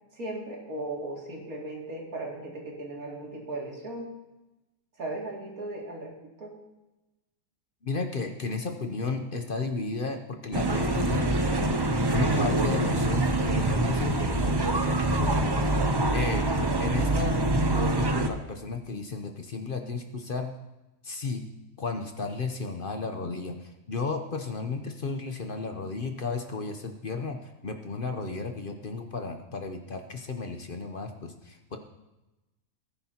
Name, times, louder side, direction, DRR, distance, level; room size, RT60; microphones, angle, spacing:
voice 1, 0.1-4.1 5.0-6.6, right 2 dB, 90° right, -2 dB, 3.0 m, -37 dB
voice 2, 7.8-11.3 12.1-16.5 16.8-17.4 17.7-20.5 21.0-21.4 21.8-31.8, left 4 dB, 45° left, 5 dB, 0.9 m, -34 dB
sound 1, 10.5-18.3, right 2 dB, 25° right, 0.6 m, -25 dB
18.0 x 10.0 x 2.9 m, 1.0 s
omnidirectional pair, 1.5 m